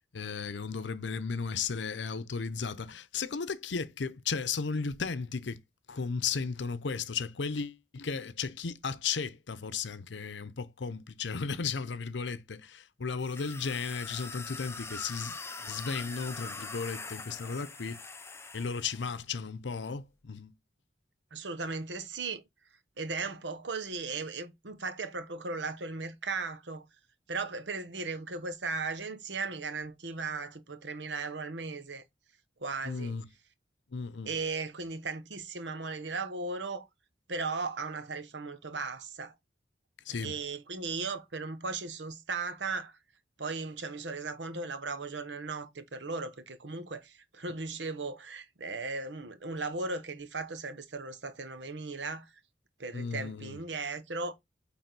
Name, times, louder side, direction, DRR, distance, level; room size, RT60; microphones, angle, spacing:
voice 1, 0.1-5.6 5.9-18.0 18.5-20.5 32.8-33.2 33.9-34.4 40.1-40.3 52.9-53.6, left 5 dB, 90° left, 0.7 m, -35 dB
sound 1, 13.2-19.1, left 4 dB, 15° left, 0.6 m, -43 dB
voice 2, 21.3-22.4 23.0-26.8 27.3-32.0 32.6-33.1 34.2-36.9 37.3-39.3 40.2-42.9 43.4-52.3 52.8-54.3, right 4 dB, 85° right, 1.1 m, -37 dB
8.8 x 3.7 x 4.0 m
head